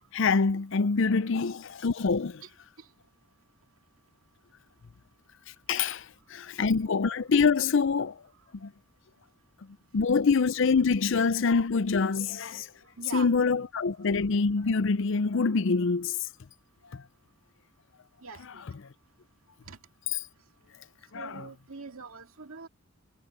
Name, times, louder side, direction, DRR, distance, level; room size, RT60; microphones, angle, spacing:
voice 1, 0.1-2.4 5.7-6.1 6.3-8.2 8.6-8.7 9.9-12.7 13.1-16.2 16.9-17.0 21.1-21.4, left 4 dB, 65° left, 0.5 m, -25 dB
voice 2, 13.0-13.3 18.2-18.6 19.7-19.8 21.1-22.7, right 5 dB, 90° right, 2.2 m, -42 dB
head